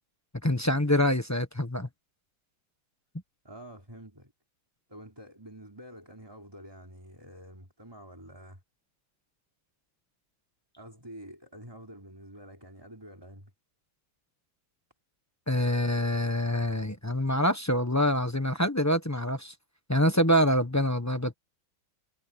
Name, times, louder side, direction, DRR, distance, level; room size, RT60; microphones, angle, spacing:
voice 1, 0.4-1.9 15.5-19.5 19.9-21.3, equal, 10° left, 0.8 m, -25 dB
voice 2, 3.4-4.3 4.9-8.6 10.8-13.5, equal, 10° right, 4.5 m, -48 dB
omnidirectional pair, 2.0 m